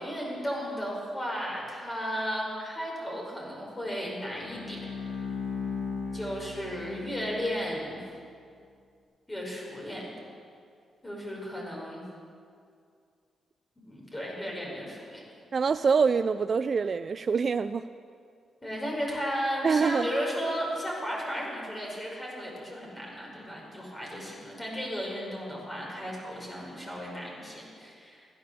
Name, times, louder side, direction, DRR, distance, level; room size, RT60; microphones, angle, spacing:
voice 1, 0.0-4.8 6.1-8.0 9.3-10.0 11.0-12.0 13.8-15.2 18.6-28.4, equal, 20° left, -3 dB, 4.8 m, -34 dB
Bowed string instrument, 4.3-7.8, left 4 dB, 90° left, 2.5 m, -37 dB
voice 2, 15.5-17.8 19.6-20.1, right 5 dB, 45° right, 11 dB, 0.3 m, -25 dB
15.5 x 11.0 x 6.8 m, 2.3 s
cardioid pair, 95°, 0 cm